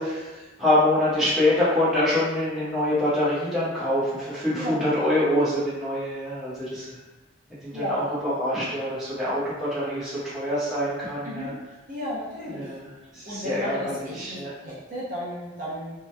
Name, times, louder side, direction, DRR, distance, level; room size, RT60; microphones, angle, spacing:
voice 1, 0.0-7.0 7.6-11.5 12.5-14.5, left 1 dB, ahead, -12 dB, 0.9 m, -25 dB
voice 2, 11.9-12.7 13.2-15.9, left 1 dB, 40° right, -8 dB, 0.6 m, -33 dB
2.8 x 2.2 x 2.2 m, 1.2 s
head